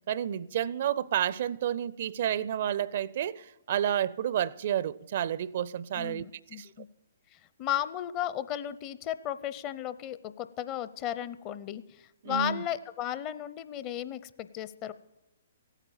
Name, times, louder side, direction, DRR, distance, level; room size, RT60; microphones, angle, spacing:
voice 1, 0.1-6.3 6.5-6.7 12.2-12.6, right 10 dB, 55° right, 0.4 m, -30 dB
voice 2, 6.0-6.9 7.6-11.8 12.2-14.9, left 11 dB, 30° left, 0.6 m, -34 dB
16.0 x 9.1 x 7.1 m
figure-of-eight pair, 125°, 0 cm